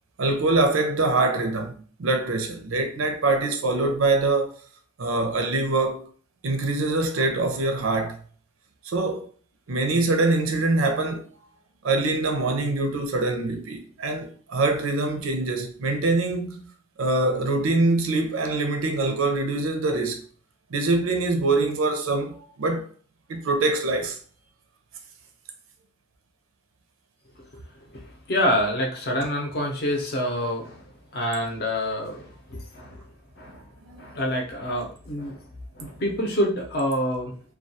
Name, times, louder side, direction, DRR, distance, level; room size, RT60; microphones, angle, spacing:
voice 1, 0.2-4.5 5.0-6.1 6.4-8.2 8.8-9.3 9.7-11.2 11.8-16.7 17.0-20.2 20.7-22.9 23.3-24.2 33.5-34.0, right 2 dB, 80° right, 0.5 m, -24 dB
voice 2, 27.8-33.1 33.4-33.6 34.0-35.4 35.7-37.3, equal, 50° left, 0.6 m, -27 dB
2.2 x 2.2 x 2.7 m
head